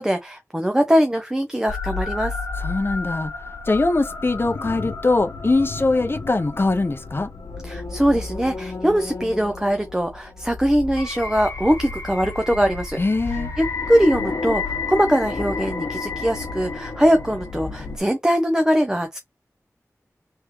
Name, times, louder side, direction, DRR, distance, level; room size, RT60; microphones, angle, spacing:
voice 1, 0.0-2.4 7.6-13.0 13.6-19.2, equal, 10° right, 0.6 m, -21 dB
sound 1, 1.7-18.0, left 4 dB, 70° left, 1.0 m, -31 dB
voice 2, 2.6-3.3 3.7-7.3 13.0-13.5, left 2 dB, 40° left, 0.7 m, -22 dB
3.4 x 3.2 x 3.2 m
wide cardioid pair, 80°, 6 cm